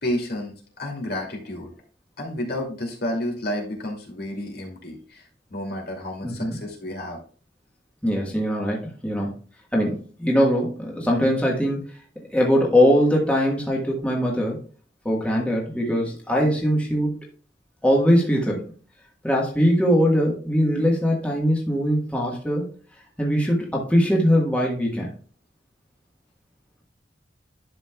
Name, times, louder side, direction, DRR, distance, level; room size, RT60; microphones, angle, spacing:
voice 1, 0.0-1.7 2.2-5.2 5.5-7.2, left 1 dB, 60° left, 0 dB, 2.6 m, -31 dB
voice 2, 6.2-6.6 8.0-9.4 9.7-11.8 12.3-14.6 15.0-17.1 17.8-18.7 19.2-22.7 23.2-25.1, equal, 10° left, -2 dB, 1.5 m, -21 dB
11.0 x 6.3 x 2.3 m, 0.40 s
head